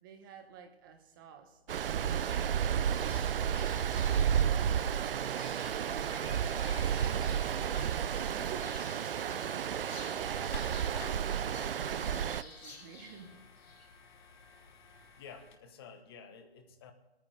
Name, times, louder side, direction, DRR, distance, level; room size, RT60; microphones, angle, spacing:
voice 1, 0.0-3.4 4.2-9.5 10.1-13.4, right 7 dB, 20° right, 6 dB, 1.0 m, -52 dB
Stream, 1.7-12.4, right 8 dB, 60° right, 0.4 m, -32 dB
sound 1, 2.2-13.9, left 2 dB, 85° left, 4.0 m, -53 dB
sound 2, 5.8-15.6, left 5 dB, 45° left, 1.3 m, -52 dB
voice 2, 15.2-16.9, left 6 dB, 25° left, 7 dB, 1.0 m, -51 dB
20.0 x 9.2 x 3.9 m, 1.1 s
hypercardioid pair, 155°, 31 cm